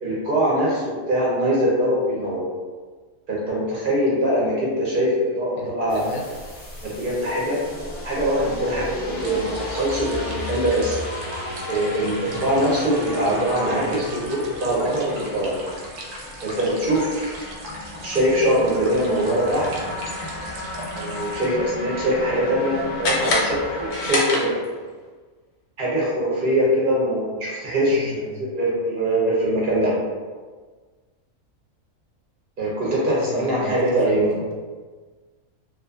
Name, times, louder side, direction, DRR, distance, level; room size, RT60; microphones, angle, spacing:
voice 1, 0.0-2.4 3.3-6.0 6.8-7.6 8.0-11.0 11.6-15.5 16.4-17.5 18.0-19.7 20.9-24.5 25.8-28.1 28.4-29.9 32.6-34.3, right 1 dB, 50° right, -6 dB, 0.7 m, -22 dB
voice 2, 5.5-6.2 12.2-12.5 18.9-19.9 27.8-28.5 33.2-34.5, left 2 dB, 70° left, -2 dB, 0.9 m, -35 dB
sound 1, 5.9-24.1, left 1 dB, 25° left, 0.9 m, -34 dB
sound 2, 9.2-21.5, right 1 dB, 85° right, 1.1 m, -40 dB
sound 3, 23.0-24.9, left 2 dB, 90° left, 1.1 m, -25 dB
2.5 x 2.4 x 2.3 m, 1.4 s
omnidirectional pair, 1.6 m